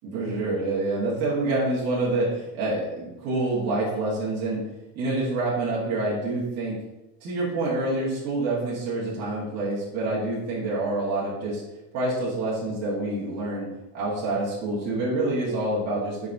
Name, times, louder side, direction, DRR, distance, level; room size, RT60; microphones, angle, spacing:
voice 1, 0.0-4.6 4.9-6.8 7.2-11.6 11.9-13.7 13.9-16.3, right 2 dB, 40° right, -8 dB, 1.4 m, -27 dB
4.7 x 3.9 x 2.6 m, 0.99 s
cardioid pair, 170°, 39 cm